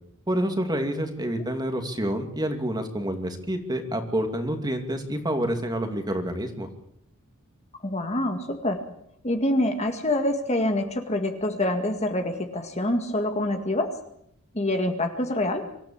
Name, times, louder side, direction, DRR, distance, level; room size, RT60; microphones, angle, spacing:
voice 1, 0.3-6.7, right 1 dB, 20° right, 6 dB, 2.5 m, -28 dB
voice 2, 7.8-8.8 9.2-13.9 14.5-15.6, left 1 dB, 30° left, 5 dB, 2.0 m, -26 dB
25.0 x 14.5 x 8.8 m, 0.74 s
head